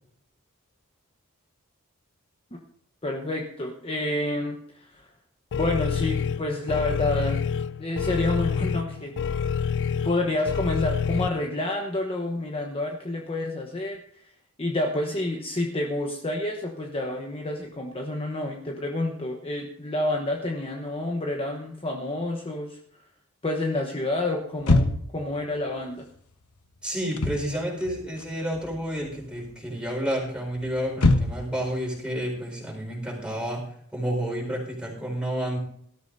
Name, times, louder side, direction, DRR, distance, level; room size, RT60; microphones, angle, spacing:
voice 1, 3.0-5.1 5.5-7.4 7.8-9.6 10.0-14.2 14.6-22.8 23.4-26.1, left 1 dB, 25° left, 2 dB, 1.1 m, -29 dB
sound 1, 5.5-11.3, left 7 dB, 55° left, 0.4 m, -27 dB
sound 2, 24.6-25.2 27.0-27.5 27.8-28.7 29.0-29.5 30.1-31.6, left 2 dB, 75° left, 1.1 m, -23 dB
voice 2, 26.8-33.6 33.9-35.6, equal, 5° right, -1 dB, 4.8 m, -30 dB
19.0 x 13.0 x 2.7 m, 0.65 s
head